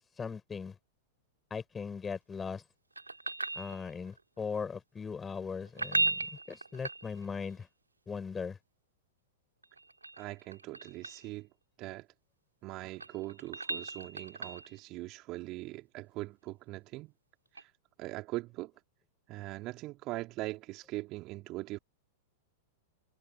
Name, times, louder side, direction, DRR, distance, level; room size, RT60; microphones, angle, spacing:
voice 1, 0.2-0.7 1.5-2.6 3.6-7.7 8.1-8.6, left 5 dB, 15° left, 7.7 m, -39 dB
sound 1, 3.0-4.2 5.7-7.5 9.6-11.3 12.7-14.8 17.5-17.6, right 3 dB, 85° right, 2.7 m, -36 dB
voice 2, 10.2-11.5 11.8-12.1 12.6-17.1 17.5-17.7 18.0-18.7 19.3-21.8, right 19 dB, 40° right, 3.8 m, -41 dB
figure-of-eight pair, 95°, 0 cm